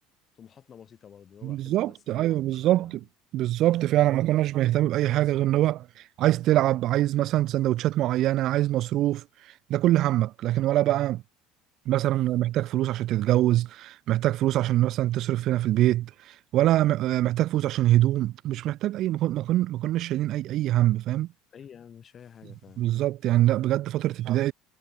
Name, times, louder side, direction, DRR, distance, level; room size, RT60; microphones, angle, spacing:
voice 1, 0.3-3.1 21.5-22.9, left 8 dB, 35° left, 1.6 m, -50 dB
voice 2, 1.4-3.0 3.3-5.9 6.2-9.2 9.7-11.2 11.9-21.3 22.8-24.5, right 14 dB, 50° right, 0.3 m, -24 dB
figure-of-eight pair, 65°, 0 cm